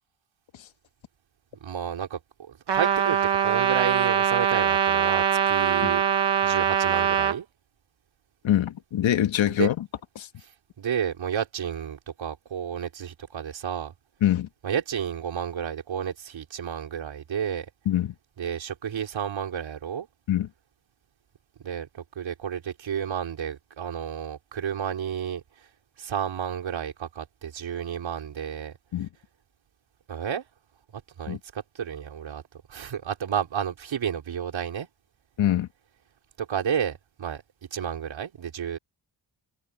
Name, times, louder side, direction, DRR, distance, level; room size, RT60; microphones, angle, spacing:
voice 1, 1.6-6.0 6.4-7.5 9.5-9.7 10.8-13.9 14.6-17.7 18.4-20.1 21.6-25.4 26.0-28.7 30.1-30.4 30.9-32.4 32.7-34.9 36.4-37.4 37.7-38.8, right 8 dB, 80° right, 4.7 m, -31 dB
Trumpet, 2.7-7.4, right 8 dB, 60° right, 1.2 m, -22 dB
voice 2, 8.4-9.7 10.2-10.3 14.2-14.5 17.8-18.1 20.3-20.5 28.9-29.1 31.3-31.4 35.4-35.7, left 11 dB, 80° left, 1.4 m, -24 dB
wide cardioid pair, 160°, 46 cm